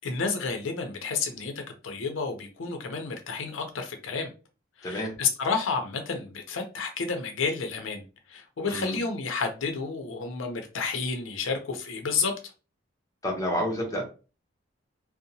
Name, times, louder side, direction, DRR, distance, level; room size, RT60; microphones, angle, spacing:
voice 1, 0.0-1.5 1.8-4.3 4.8-8.0 8.3-12.3, left 5 dB, 85° left, 0.5 m, -30 dB
voice 2, 4.8-5.2 8.6-9.0 13.2-14.1, equal, 15° left, 0.7 m, -29 dB
2.7 x 2.0 x 2.7 m
head